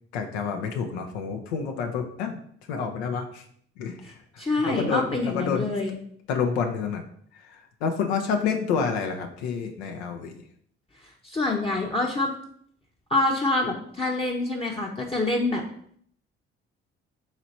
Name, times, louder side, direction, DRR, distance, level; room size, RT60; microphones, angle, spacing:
voice 1, 0.1-2.3 2.7-3.5 3.8-4.2 4.5-5.7 6.3-7.0 7.3-10.4, left 6 dB, 80° left, 4 dB, 0.6 m, -29 dB
voice 2, 4.0-6.0 11.2-12.3 13.1-15.6, left 2 dB, 15° left, 1 dB, 0.7 m, -26 dB
4.0 x 3.1 x 4.1 m, 0.63 s
hypercardioid pair, 45°, 32 cm